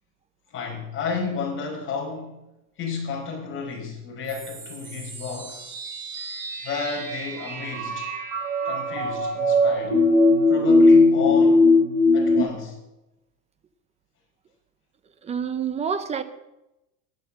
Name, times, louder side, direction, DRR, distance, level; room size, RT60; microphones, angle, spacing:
voice 1, 0.5-2.4 2.8-5.6 6.6-8.1 8.6-10.0 10.5-11.8 12.1-12.8, left 4 dB, 25° left, -1 dB, 5.4 m, -32 dB
sound 1, 4.3-12.4, left 2 dB, 50° right, 5.9 m, -20 dB
voice 2, 15.2-16.2, right 7 dB, 15° right, 12 dB, 0.7 m, -27 dB
15.0 x 10.5 x 6.9 m, 0.95 s
supercardioid pair, 150°, 46 cm